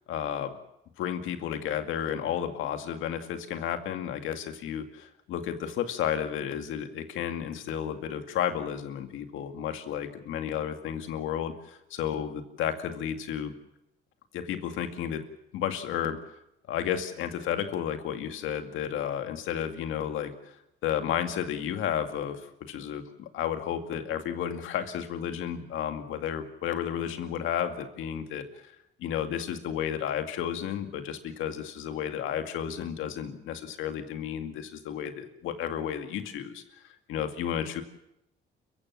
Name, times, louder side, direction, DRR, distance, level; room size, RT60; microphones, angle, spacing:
voice 1, 0.1-0.6 1.0-13.5 14.3-15.2 15.5-16.2 16.7-20.3 20.8-28.6 29.0-37.8, left 9 dB, 90° left, 7 dB, 2.2 m, -32 dB
29.5 x 15.5 x 7.3 m, 0.82 s
cardioid pair, 90°, 20 cm